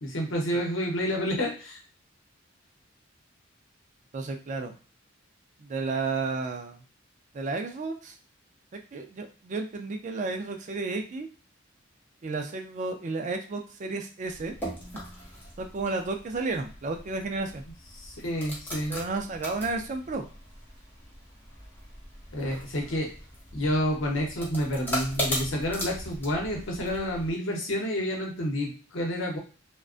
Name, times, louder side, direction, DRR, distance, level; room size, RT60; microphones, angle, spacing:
voice 1, 0.0-1.8 18.0-19.0 22.3-23.1 23.5-29.4, equal, 70° left, 0 dB, 0.8 m, -29 dB
voice 2, 4.1-4.7 5.6-6.8 7.3-8.1 8.9-11.3 12.2-14.5 15.6-17.6 18.9-20.2, right 3 dB, 40° right, 5 dB, 0.4 m, -32 dB
sound 1, 14.2-27.3, equal, 10° left, 0.7 m, -39 dB
2.4 x 2.2 x 2.4 m, 0.37 s
head